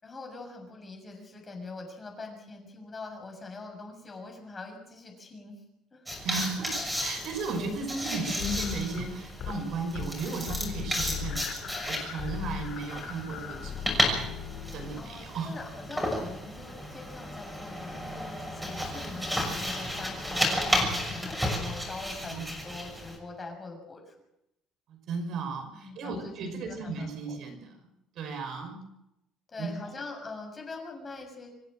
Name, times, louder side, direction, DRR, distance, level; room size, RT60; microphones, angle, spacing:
voice 1, 0.0-5.6 5.9-6.1 7.6-7.8 14.9-24.1 25.7-27.4 29.5-31.5, left 3 dB, 20° left, 3 dB, 6.7 m, -43 dB
sound 1, 6.1-23.2, left 1 dB, 5° right, 6.5 m, -33 dB
voice 2, 6.2-14.4 14.7-15.5 22.3-22.4 24.9-27.7 28.2-28.8 29.6-29.7, right 3 dB, 55° right, 5 dB, 5.4 m, -35 dB
sound 2, 8.4-9.6 9.9-10.2 10.5-15.2, left 8 dB, 50° left, 2.8 m, -38 dB
26.5 x 15.0 x 7.7 m, 0.85 s
cardioid pair, 155°, 0 cm